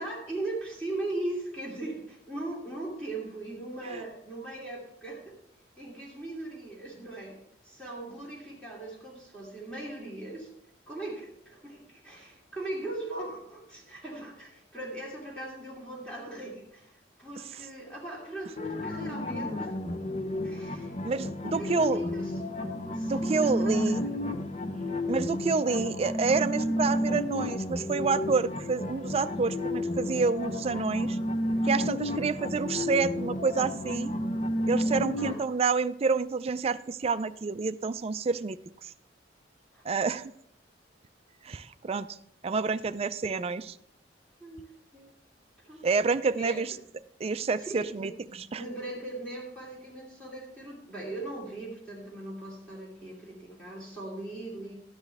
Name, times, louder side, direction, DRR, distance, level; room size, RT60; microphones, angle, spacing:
voice 1, 0.0-5.4 5.8-7.4 7.6-10.5 10.9-19.7 20.4-20.9 21.4-22.3 22.8-24.5 35.2-35.4 39.7-39.8 43.2-43.4 44.4-44.6 44.9-45.1 45.6-45.8 46.4-46.8 47.6-47.9 48.3-54.7, right 2 dB, 5° left, -5 dB, 2.6 m, -39 dB
sound 1, 18.6-35.3, left 1 dB, 40° left, 0.9 m, -31 dB
voice 2, 21.0-22.0 23.0-24.0 25.1-31.2 31.6-34.1 34.7-38.6 38.8-38.9 39.8-40.3 41.4-42.2 42.4-43.7 45.8-46.7 47.2-48.6, right 4 dB, 35° right, 13 dB, 0.4 m, -28 dB
13.0 x 10.0 x 3.4 m, 0.73 s
head